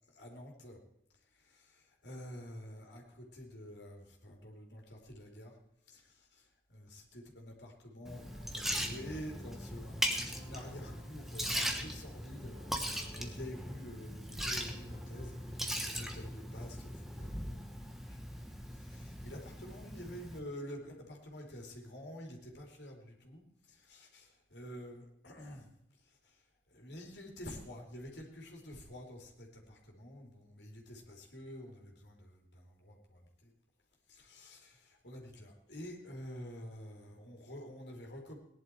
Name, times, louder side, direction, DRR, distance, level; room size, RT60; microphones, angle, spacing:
voice 1, 0.1-0.8 1.3-5.6 5.9-25.7 26.0-33.5 34.1-38.4, equal, 75° left, 1 dB, 3.3 m, -49 dB
sound 1, 8.0-16.5, left 1 dB, 25° right, 7.5 m, -57 dB
Liquid, 8.1-20.4, equal, ahead, 1.2 m, -39 dB
18.0 x 11.0 x 4.7 m, 0.82 s
head